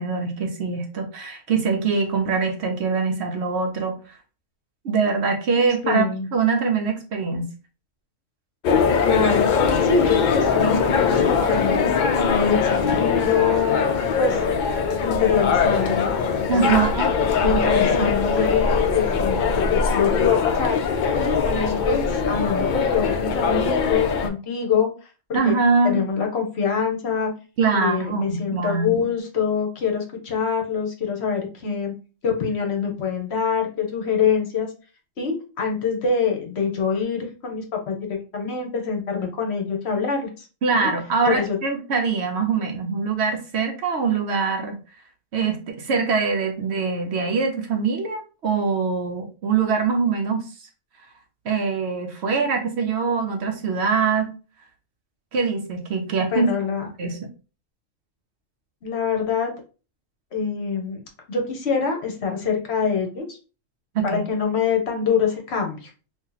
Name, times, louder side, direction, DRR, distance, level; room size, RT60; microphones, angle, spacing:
voice 1, 0.0-4.2 4.8-7.5 16.5-17.1 25.3-26.0 27.6-29.0 40.6-44.7 45.3-50.5 51.5-54.3 55.3-56.5 57.0-57.2 63.9-64.2, right 5 dB, 65° right, 4 dB, 0.8 m, -23 dB
voice 2, 5.8-6.3 9.0-13.8 14.2-14.4 15.0-16.1 16.6-16.8 17.4-25.6 25.8-27.3 27.7-31.9 32.2-34.7 35.2-40.5 40.8-40.9 41.3-41.6 56.3-56.9 58.8-59.5 60.3-61.0 61.3-63.4 64.0-65.9, left 6 dB, 60° left, 2 dB, 1.0 m, -25 dB
sound 1, 8.6-24.3, left 5 dB, 75° left, 0.4 m, -21 dB
2.8 x 2.5 x 3.8 m, 0.34 s
omnidirectional pair, 1.4 m